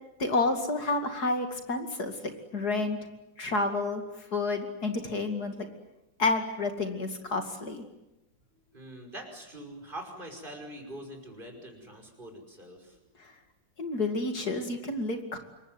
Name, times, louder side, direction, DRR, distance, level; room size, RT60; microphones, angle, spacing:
voice 1, 0.2-3.0 3.4-5.7 6.2-7.8 13.2-13.3 13.8-15.4, left 3 dB, 50° left, 6 dB, 2.9 m, -30 dB
voice 2, 8.7-13.0 14.7-14.8, right 1 dB, 25° right, 3 dB, 5.7 m, -44 dB
27.5 x 22.5 x 9.4 m, 0.97 s
omnidirectional pair, 2.3 m